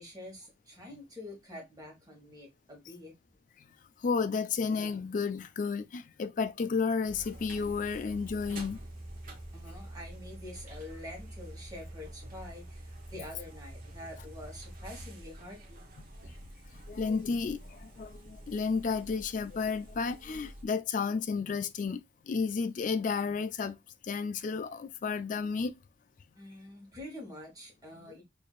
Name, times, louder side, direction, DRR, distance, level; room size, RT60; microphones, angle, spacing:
voice 1, 0.0-3.1 9.5-15.8 26.3-28.2, left 1 dB, 20° right, 1.5 m, -46 dB
voice 2, 4.0-8.8 13.2-13.3 16.7-23.8 24.0-25.8, left 5 dB, 45° left, 0.4 m, -32 dB
sound 1, 7.1-20.6, right 1 dB, 50° right, 0.9 m, -47 dB
4.5 x 2.7 x 2.4 m
head